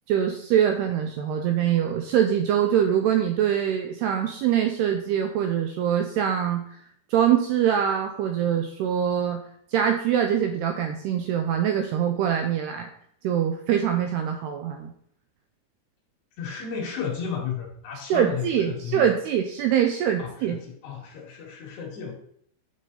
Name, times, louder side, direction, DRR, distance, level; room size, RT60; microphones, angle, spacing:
voice 1, 0.1-6.7 7.1-9.4 9.7-12.9 13.2-14.9 18.1-20.6, right 9 dB, 85° right, 5 dB, 2.4 m, -24 dB
voice 2, 16.4-19.0 20.2-22.1, left 7 dB, 65° left, -2 dB, 4.3 m, -33 dB
10.0 x 7.4 x 4.1 m, 0.68 s
omnidirectional pair, 5.4 m